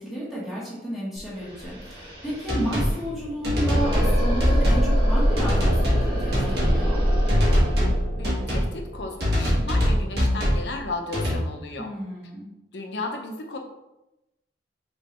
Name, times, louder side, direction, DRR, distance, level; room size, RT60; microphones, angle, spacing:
voice 1, 0.0-7.0 11.8-12.4, equal, ahead, -8 dB, 1.2 m, -32 dB
sound 1, 1.2-1.3 1.5-10.3, equal, 30° right, 1.3 m, -24 dB
sound 2, 2.5-2.9 3.4-4.1 4.4-4.9 5.4-6.0 6.3-6.8 7.3-8.0 8.2-8.7 9.2-10.6 11.1-11.4, equal, 65° right, 1.6 m, -23 dB
voice 2, 8.1-11.9 12.7-13.6, left 3 dB, 80° left, 3 dB, 0.7 m, -34 dB
5.3 x 3.2 x 3.0 m, 0.93 s
head